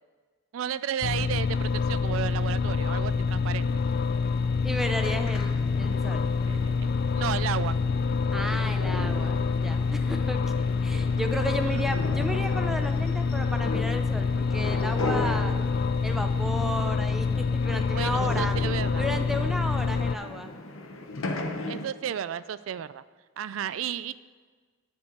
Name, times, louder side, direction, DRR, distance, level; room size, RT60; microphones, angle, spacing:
voice 1, 0.5-3.8 6.5-7.8 10.9-11.0 11.7-11.8 17.9-19.1 21.7-23.0 23.4-24.1, right 9 dB, 75° right, 15 dB, 0.3 m, -33 dB
sound 1, 1.0-20.2, left 5 dB, 50° left, 0.3 m, -26 dB
sound 2, 3.7-21.9, left 2 dB, 80° left, 0.9 m, -38 dB
voice 2, 4.6-6.3 8.3-15.6 16.0-18.5 19.0-20.5, equal, ahead, 5 dB, 0.6 m, -33 dB
10.0 x 5.3 x 7.9 m, 1.5 s
head